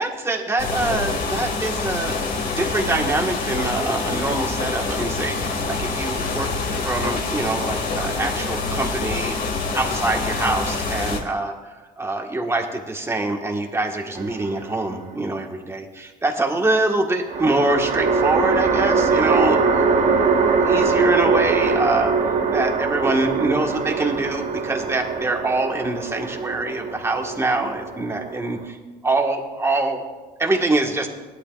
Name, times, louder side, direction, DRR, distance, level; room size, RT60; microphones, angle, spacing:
voice 1, 0.0-2.2 2.6-6.5 6.8-9.4 9.7-11.5 12.0-19.6 20.7-28.8 29.0-30.0 30.4-31.1, right 2 dB, 15° right, 1 dB, 1.8 m, -24 dB
sound 1, 0.6-11.2, left 3 dB, 60° left, 2.5 m, -26 dB
sound 2, 14.2-15.0 17.3-28.7, right 5 dB, 45° right, 1.2 m, -22 dB
19.0 x 11.5 x 2.6 m, 1.3 s
cardioid pair, 110°, 17 cm